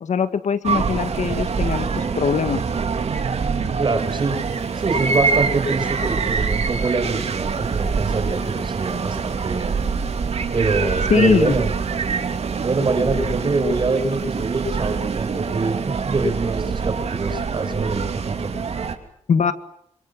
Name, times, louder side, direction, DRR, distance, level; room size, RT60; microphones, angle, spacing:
voice 1, 0.0-2.6 11.1-11.6 19.3-19.5, left 6 dB, 75° left, 10 dB, 1.9 m, -21 dB
sound 1, 0.6-19.0, right 5 dB, 60° right, 3.0 m, -25 dB
voice 2, 3.8-4.4 4.7-9.7 10.5-11.7 12.6-18.5, right 3 dB, 40° right, 6 dB, 6.3 m, -24 dB
28.5 x 26.0 x 7.5 m, 0.69 s
wide cardioid pair, 150°, 12 cm